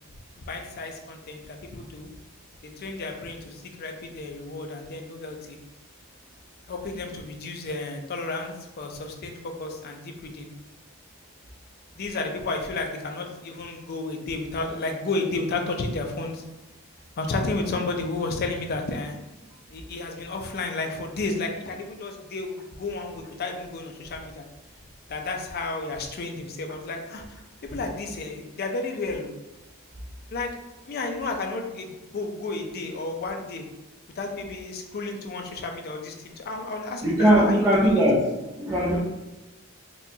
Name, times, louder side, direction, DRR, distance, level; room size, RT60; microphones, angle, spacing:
voice 1, 0.4-2.1 2.6-5.6 6.7-10.5 12.0-16.4 17.2-19.1 19.7-24.4 25.1-27.2 27.6-29.3 30.3-30.5 30.9-33.7 34.2-38.0, left 3 dB, 50° left, 3 dB, 0.5 m, -32 dB
voice 2, 37.0-38.2 38.6-39.0, right 1 dB, 15° right, -6 dB, 0.5 m, -19 dB
4.2 x 2.3 x 2.7 m, 1.0 s
head